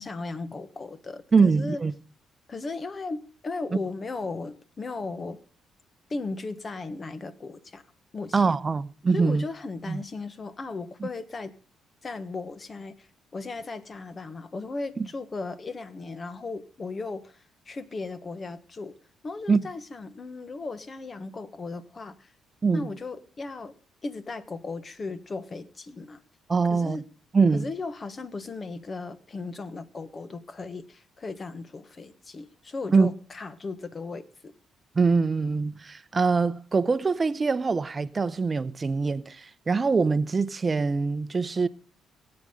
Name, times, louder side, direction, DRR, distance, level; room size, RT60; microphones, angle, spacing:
voice 1, 0.0-1.8 2.5-5.4 6.1-7.8 8.1-8.6 9.1-11.5 12.0-17.4 17.7-18.9 19.2-22.3 22.7-23.7 24.0-26.2 26.7-27.1 27.5-34.5, left 3 dB, 35° left, 1.3 m, -36 dB
voice 2, 1.3-1.9 3.7-3.8 8.3-9.4 9.9-10.0 11.0-11.1 15.0-15.1 19.5-19.6 22.6-22.9 26.5-27.0 27.3-27.7 32.9-33.1 34.9-41.7, right 4 dB, 30° right, 0.8 m, -23 dB
19.0 x 8.9 x 3.8 m
cardioid pair, 85°, 0 cm